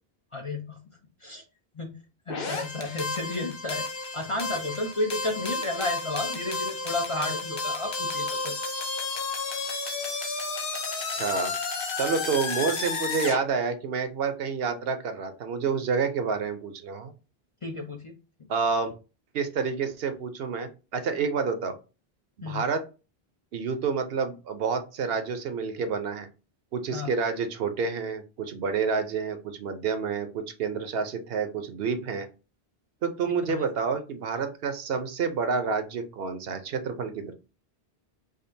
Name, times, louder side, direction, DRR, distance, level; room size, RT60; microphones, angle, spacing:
voice 1, 0.3-0.8 1.2-1.4 1.7-2.0 2.3-3.9 4.1-8.6 17.6-18.2 22.4-22.6 26.9-27.1 33.5-33.7, left 2 dB, 40° left, 3 dB, 0.5 m, -32 dB
sound 1, 2.3-13.4, left 3 dB, 60° left, 1.0 m, -32 dB
voice 2, 11.1-11.5 12.0-17.1 18.5-18.9 19.3-21.8 22.5-22.8 23.5-26.3 26.7-32.3 33.0-37.3, right 5 dB, 70° right, 8 dB, 0.9 m, -29 dB
5.0 x 2.4 x 2.7 m, 0.31 s
omnidirectional pair, 1.0 m